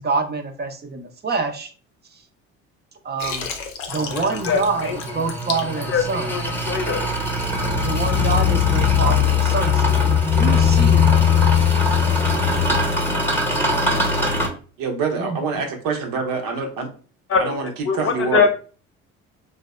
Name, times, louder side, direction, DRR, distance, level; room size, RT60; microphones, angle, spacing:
voice 1, 0.0-1.7 2.1-2.2 3.0-3.5 3.9-6.3 7.8-11.1 13.0-13.6 13.9-14.3 15.1-15.4, right 4 dB, 30° right, 0.6 m, -27 dB
Water, 3.2-6.6, left 6 dB, 80° left, 0.6 m, -32 dB
sound 1, 3.9-14.5, left 5 dB, 5° left, 0.9 m, -20 dB
voice 2, 4.1-5.0 5.9-7.1 17.3-18.5, left 5 dB, 40° left, 0.7 m, -23 dB
voice 3, 14.8-16.9 17.4-18.4, right 4 dB, 65° right, 0.8 m, -25 dB
3.3 x 2.1 x 2.3 m
hypercardioid pair, 60°, 36 cm